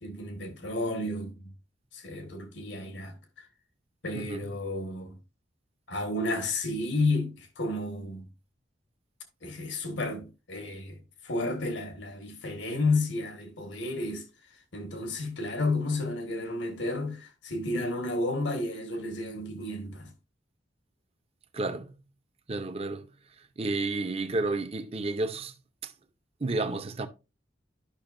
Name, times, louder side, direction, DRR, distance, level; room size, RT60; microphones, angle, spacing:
voice 1, 0.0-1.5 1.9-3.2 4.0-5.2 5.9-8.3 9.4-14.3 14.7-20.1, left 2 dB, 75° left, 1.6 m, -32 dB
voice 2, 4.1-4.5 21.5-21.9 22.5-23.1 23.6-25.5 25.8-25.9 26.4-27.1, right 2 dB, 30° right, 0.7 m, -31 dB
12.5 x 5.9 x 2.5 m
head